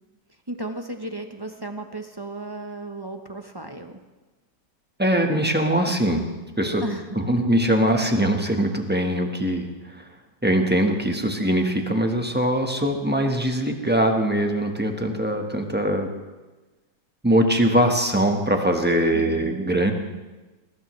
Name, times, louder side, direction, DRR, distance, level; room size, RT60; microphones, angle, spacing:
voice 1, 0.5-4.0 6.8-7.5 19.1-19.6, right 2 dB, 25° right, 5 dB, 0.5 m, -35 dB
voice 2, 5.0-6.2 6.6-6.8 7.2-9.7 10.0-10.1 10.4-16.1 17.2-19.9, right 1 dB, 5° right, 3 dB, 1.1 m, -22 dB
20.0 x 19.0 x 3.2 m, 1.2 s
omnidirectional pair, 1.9 m